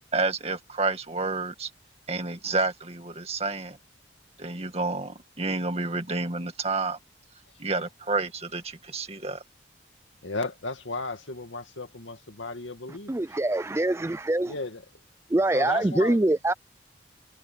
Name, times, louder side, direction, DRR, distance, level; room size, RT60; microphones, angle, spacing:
voice 1, 0.1-1.7 2.1-3.8 4.4-7.0 7.6-9.4, right 3 dB, 35° right, 2.2 m, -29 dB
voice 2, 10.2-13.1 14.4-14.8 15.5-16.2, left 3 dB, 90° left, 2.2 m, -34 dB
voice 3, 13.1-14.5 15.3-16.5, right 2 dB, 15° right, 0.4 m, -24 dB
head